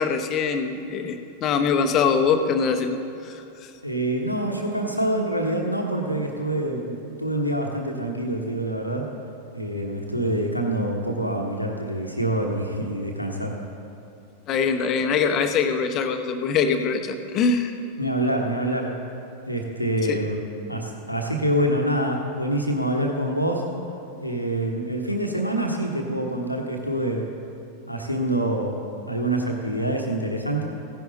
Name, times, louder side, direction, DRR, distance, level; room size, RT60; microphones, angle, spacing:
voice 1, 0.0-3.7 14.5-17.7 20.1-20.2, left 5 dB, 35° left, 7 dB, 0.9 m, -23 dB
voice 2, 3.8-9.1 9.5-13.6 18.0-19.0 19.5-20.4 20.7-23.7 24.2-27.3 27.9-30.6, right 1 dB, 90° left, 2 dB, 1.2 m, -26 dB
15.5 x 10.5 x 4.1 m, 2.7 s
figure-of-eight pair, 90°, 0 cm